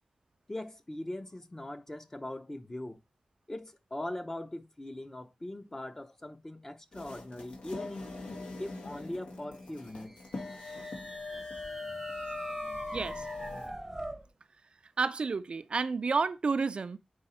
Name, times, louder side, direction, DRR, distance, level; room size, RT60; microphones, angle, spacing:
voice 1, 0.5-3.0 3.5-8.1 8.6-10.1, left 1 dB, 20° left, 0.8 m, -40 dB
sound 1, 6.9-13.7, left 3 dB, 75° left, 2.0 m, -42 dB
sound 2, 9.9-14.3, right 1 dB, 10° right, 0.8 m, -43 dB
voice 2, 12.9-13.3 15.0-17.0, right 4 dB, 55° right, 0.4 m, -30 dB
6.3 x 4.8 x 4.2 m
wide cardioid pair, 120°, 2 cm